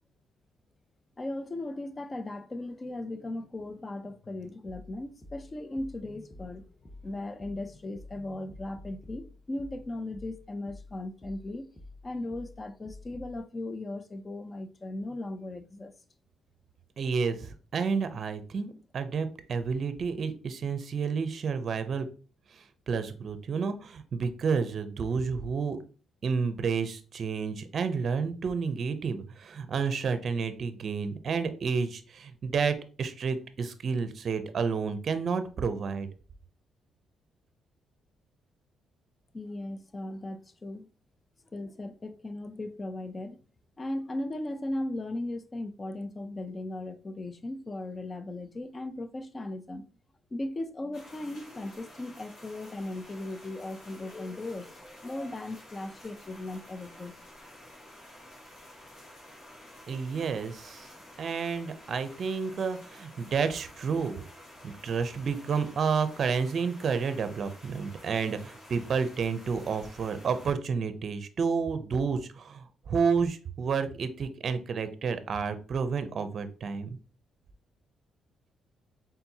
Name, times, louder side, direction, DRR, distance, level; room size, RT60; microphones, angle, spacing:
voice 1, 1.2-6.6 7.0-11.7 12.0-15.9 39.3-40.9 41.5-43.4 43.8-49.8 50.3-57.1, left 2 dB, 25° left, 0.5 m, -37 dB
sound 1, 4.7-13.4, left 2 dB, 10° left, 0.9 m, -49 dB
voice 2, 17.0-22.1 22.5-25.8 26.2-36.1 59.9-60.9 61.2-64.2 64.6-77.0, right 5 dB, 50° right, 0.6 m, -30 dB
sound 2, 50.9-70.5, left 1 dB, 70° left, 2.2 m, -51 dB
4.4 x 3.7 x 2.8 m
cardioid pair, 90°, 0 cm